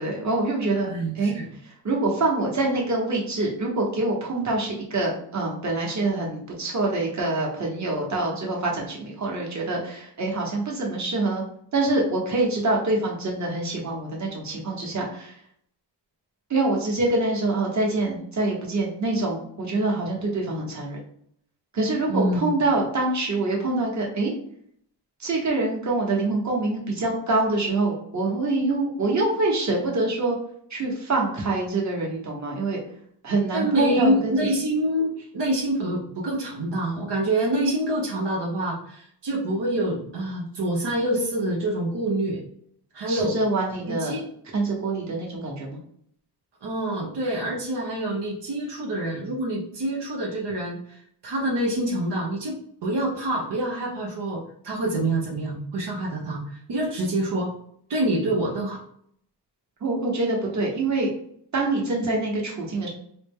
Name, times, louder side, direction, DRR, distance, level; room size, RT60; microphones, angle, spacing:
voice 1, 0.0-0.9 1.1-1.3 1.8-11.4 11.7-15.3 16.5-21.0 21.7-24.3 25.2-30.4 30.7-32.8 33.2-34.3 43.1-44.1 44.5-45.8 59.8-61.1 61.5-62.9, right 2 dB, 40° right, -2 dB, 1.2 m, -25 dB
voice 2, 0.9-1.5 22.1-22.7 33.5-42.4 42.9-43.4 43.8-44.2 46.6-57.5 57.9-58.8, right 1 dB, 75° right, -3 dB, 0.9 m, -26 dB
4.0 x 2.1 x 3.5 m, 0.67 s
wide cardioid pair, 85°, 42 cm